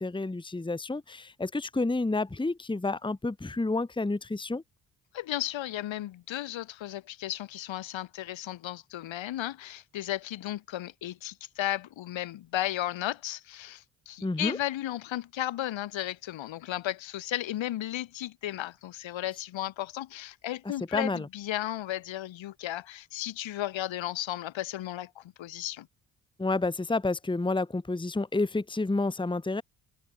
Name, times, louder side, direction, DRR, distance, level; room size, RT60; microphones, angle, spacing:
voice 1, 0.0-4.6 14.2-14.6 20.9-21.3 26.4-29.6, left 3 dB, 10° left, 1.3 m, -29 dB
voice 2, 5.1-25.9, left 13 dB, 65° left, 1.9 m, -34 dB
open air
hypercardioid pair, 45°, 49 cm